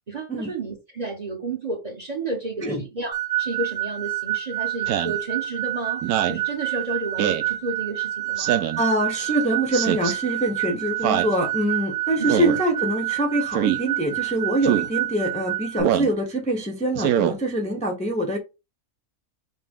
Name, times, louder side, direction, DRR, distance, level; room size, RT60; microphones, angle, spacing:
voice 1, 0.1-8.7 12.2-12.4, right 3 dB, 35° right, 0.9 m, -32 dB
sound 1, 3.1-15.8, right 15 dB, 60° right, 0.6 m, -28 dB
Speech synthesizer, 4.9-5.2 6.0-6.4 7.2-7.5 8.4-8.8 9.7-10.1 11.0-11.3 12.3-12.6 13.5-13.8 14.6-14.9 15.8-16.1 16.9-17.3, right 10 dB, 85° right, 1.1 m, -23 dB
voice 2, 8.8-18.4, right 1 dB, 5° left, 0.7 m, -24 dB
5.8 x 2.1 x 3.5 m
omnidirectional pair, 1.5 m